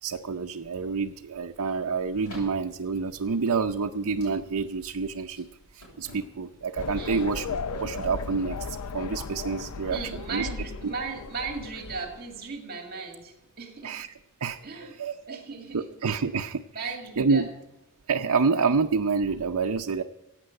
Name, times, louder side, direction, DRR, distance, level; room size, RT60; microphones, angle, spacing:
voice 1, 0.0-5.5 5.7-10.0 10.3-10.5 10.8-10.9 13.8-15.4 15.7-17.5 18.1-20.0, right 5 dB, 85° right, 4 dB, 0.6 m, -28 dB
sound 1, 1.9-8.5, equal, 70° left, 7.7 m, -52 dB
sound 2, 6.8-12.4, left 5 dB, 90° left, 0.6 m, -36 dB
voice 2, 6.9-7.4 9.9-13.9 14.6-14.9 15.3-15.9 16.7-17.5, right 4 dB, 45° right, 2 dB, 2.4 m, -37 dB
16.0 x 9.1 x 7.7 m, 0.95 s
head